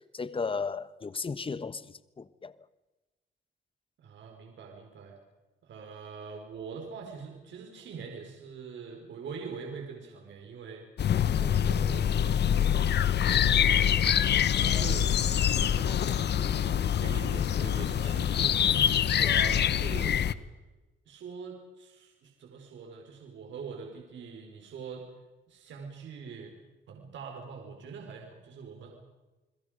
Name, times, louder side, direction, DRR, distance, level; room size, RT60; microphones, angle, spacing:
voice 1, 0.0-2.6 18.0-18.2 19.1-19.3, left 4 dB, 25° left, 1.3 m, -35 dB
voice 2, 4.0-5.1 5.6-10.9 11.3-18.6 19.2-20.3 21.1-25.0 25.5-26.5 26.9-28.9, right 5 dB, 70° right, 4.9 m, -43 dB
sound 1, 11.0-20.3, left 9 dB, 60° left, 1.1 m, -25 dB
29.5 x 22.0 x 5.2 m
cardioid pair, 90°, 20 cm